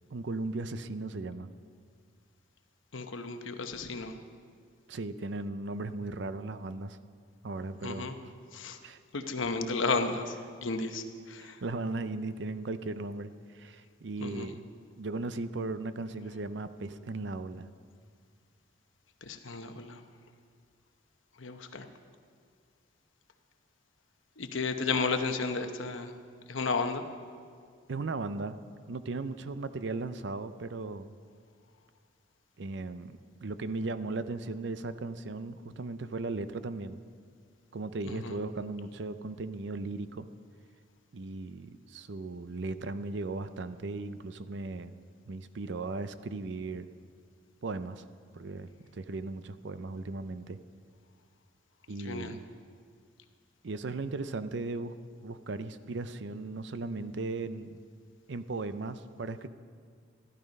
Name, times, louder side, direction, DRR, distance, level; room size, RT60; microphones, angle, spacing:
voice 1, 0.1-1.5 4.9-7.0 7.4-8.1 8.8-9.0 11.4-14.6 15.0-17.7 27.9-28.6 28.9-31.1 32.6-37.0 37.7-40.3 41.1-44.9 45.3-46.9 47.6-48.0 48.3-50.6 51.9-52.5 53.6-54.9 55.2-57.8 58.3-59.5, right 3 dB, 60° right, 12 dB, 0.5 m, -37 dB
voice 2, 2.9-4.1 7.8-8.1 8.5-8.8 9.1-11.6 14.2-14.5 19.2-20.0 21.4-21.9 24.4-26.1 26.5-27.0 38.0-38.4 52.0-52.4, left 4 dB, 80° left, 7 dB, 0.9 m, -33 dB
13.5 x 12.5 x 5.3 m, 2.1 s
head